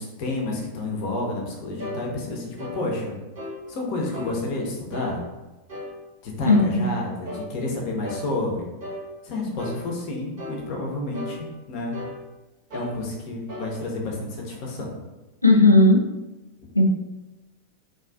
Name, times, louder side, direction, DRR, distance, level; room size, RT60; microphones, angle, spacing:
voice 1, 0.0-3.2 3.7-5.2 6.2-8.7 9.2-12.0 12.7-15.0, left 2 dB, 45° left, -1 dB, 0.6 m, -30 dB
sound 1, 1.8-2.0 2.6-2.8 3.4-3.6 4.1-4.4 4.9-5.1 5.7-5.9 6.5-6.7 7.3-7.5 8.0-8.3 8.8-9.0 9.6-9.8 10.4-10.6 11.1-11.4 11.9-12.2 12.7-13.0 13.5-13.7, left 1 dB, 50° right, 0.7 m, -35 dB
voice 2, 6.5-7.0 15.4-16.0 16.8-16.9, left 2 dB, 85° left, 2 dB, 0.3 m, -16 dB
2.4 x 2.3 x 2.2 m, 1.1 s
figure-of-eight pair, 90°, 0 cm